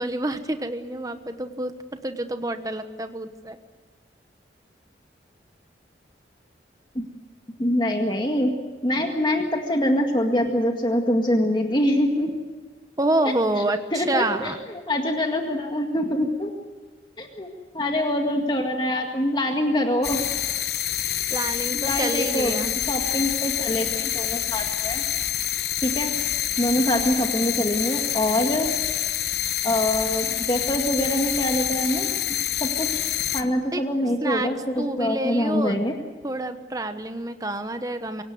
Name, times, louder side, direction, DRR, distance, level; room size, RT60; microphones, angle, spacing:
voice 1, 0.0-3.6 13.0-14.6 21.3-22.8 26.8-27.0 33.7-34.5 34.8-35.8 36.2-38.2, right 2 dB, 20° right, 8 dB, 1.1 m, -28 dB
voice 2, 7.6-8.5 8.8-12.3 13.9-16.5 17.2-17.5 17.7-20.2 21.7-22.6 22.9-25.0 25.8-26.1 26.6-28.7 29.6-32.1 32.6-33.0 33.3-36.0, left 1 dB, 25° left, 3 dB, 1.9 m, -24 dB
sound 1, 20.0-33.4, left 11 dB, 65° left, 1.0 m, -27 dB
24.5 x 17.5 x 9.5 m, 1.3 s
head